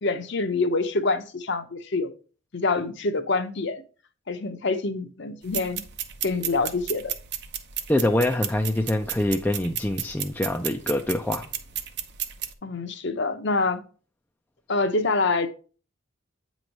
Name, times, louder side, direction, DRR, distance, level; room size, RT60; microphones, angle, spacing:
voice 1, 0.0-2.1 2.5-3.8 4.3-5.8 6.2-7.1 12.6-13.8 14.7-15.5, left 3 dB, 55° left, 0.7 m, -26 dB
sound 1, 5.4-12.5, right 10 dB, 50° right, 0.7 m, -34 dB
voice 2, 7.9-11.5, left 1 dB, 10° left, 0.4 m, -25 dB
8.7 x 3.1 x 5.2 m
head